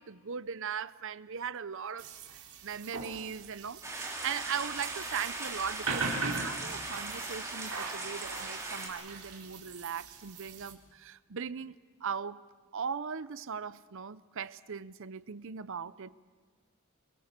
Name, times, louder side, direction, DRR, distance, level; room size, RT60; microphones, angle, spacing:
voice 1, 0.0-11.7 12.0-12.4 12.7-16.1, right 7 dB, 60° right, 0.7 m, -39 dB
sound 1, 2.0-10.7, right 4 dB, 85° right, 3.8 m, -40 dB
sound 2, 3.8-8.9, right 2 dB, 15° right, 4.9 m, -39 dB
29.5 x 20.5 x 6.7 m
head